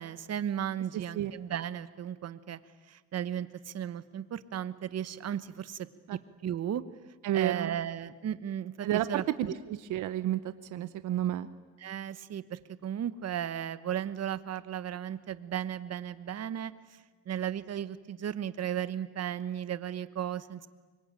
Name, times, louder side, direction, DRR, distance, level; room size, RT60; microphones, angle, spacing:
voice 1, 0.0-2.6 2.9-5.9 6.4-6.8 7.3-9.2 11.8-17.0 17.3-20.7, right 10 dB, 55° right, 15 dB, 1.1 m, -35 dB
voice 2, 7.2-7.8 8.8-11.5, right 12 dB, 85° right, 13 dB, 0.9 m, -31 dB
25.0 x 22.0 x 9.0 m, 1.4 s
cardioid pair, 90°, 30 cm